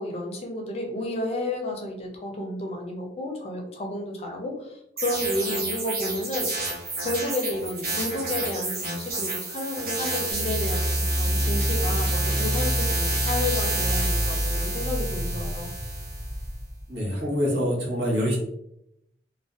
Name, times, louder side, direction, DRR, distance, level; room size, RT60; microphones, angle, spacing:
voice 1, 0.0-15.7, left 1 dB, 35° left, 2 dB, 0.4 m, -31 dB
sound 1, 5.0-16.4, right 2 dB, 55° right, 0.7 m, -30 dB
sound 2, 10.3-16.8, equal, 20° right, 1.0 m, -27 dB
voice 2, 16.9-18.4, equal, 75° right, -4 dB, 1.0 m, -25 dB
2.5 x 2.1 x 2.4 m, 0.78 s
head